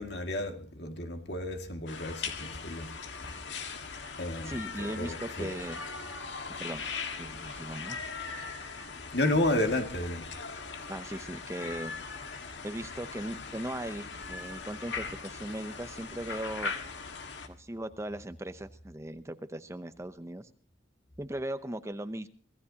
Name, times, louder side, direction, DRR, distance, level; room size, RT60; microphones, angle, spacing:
voice 1, 0.0-2.9 4.2-4.5 4.8-5.5 9.1-10.2, left 1 dB, 65° left, 2.1 m, -31 dB
sound 1, 1.9-17.5, left 5 dB, 80° left, 1.7 m, -40 dB
voice 2, 4.4-5.8 6.6-6.8 7.2-8.0 10.9-11.9 12.6-16.7 17.5-20.5 21.2-22.3, right 1 dB, 15° right, 0.7 m, -38 dB
25.5 x 16.5 x 2.8 m
head